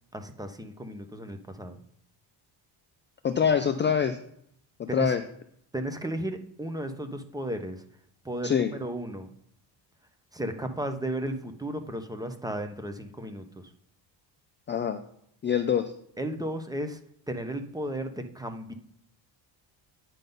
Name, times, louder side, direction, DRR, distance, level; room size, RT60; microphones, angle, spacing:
voice 1, 0.1-1.8 4.9-5.1 5.7-7.8 8.2-9.3 10.3-13.5 16.2-17.0 17.3-18.7, right 1 dB, 10° right, 7 dB, 0.7 m, -34 dB
voice 2, 3.2-4.2 4.8-5.2 8.4-8.7 14.7-15.0 15.4-15.9, left 7 dB, 25° left, 7 dB, 0.4 m, -25 dB
9.1 x 3.7 x 5.3 m, 0.68 s
cardioid pair, 130°, 46 cm